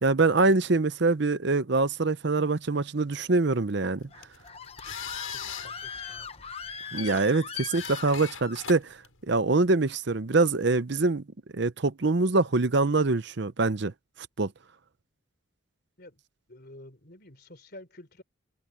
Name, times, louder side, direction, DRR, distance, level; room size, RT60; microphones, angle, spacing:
voice 1, 0.0-4.1 6.9-9.0 9.3-11.2 11.5-13.9 14.4-14.5, right 3 dB, 55° right, 0.7 m, -24 dB
sound 1, 4.0-9.7, left 9 dB, 85° left, 6.7 m, -41 dB
Screaming, 4.1-8.6, left 6 dB, 30° left, 1.1 m, -40 dB
voice 2, 5.3-6.4 16.0-16.2 16.5-18.2, left 1 dB, 50° left, 3.7 m, -49 dB
head